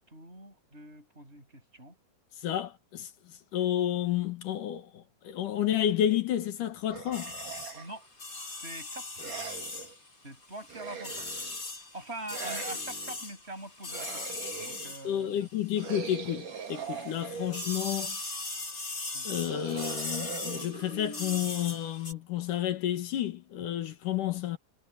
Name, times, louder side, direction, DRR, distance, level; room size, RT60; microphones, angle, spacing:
voice 1, 0.0-1.9 7.7-8.1 8.6-9.4 10.2-11.4 11.9-15.5 17.4-17.5 19.1-19.3, right 2 dB, 20° right, 8.3 m, -44 dB
voice 2, 2.4-3.1 3.5-7.3 15.0-18.2 19.2-24.6, left 11 dB, 80° left, 3.3 m, -31 dB
sound 1, 6.9-8.0 9.2-9.9 10.7-11.6 12.3-13.2 13.9-15.0 15.8-17.8 19.4-21.8, right 6 dB, 90° right, 5.5 m, -41 dB
sound 2, 7.1-16.2 16.5-22.1, left 2 dB, 35° left, 8.6 m, -39 dB
omnidirectional pair, 3.6 m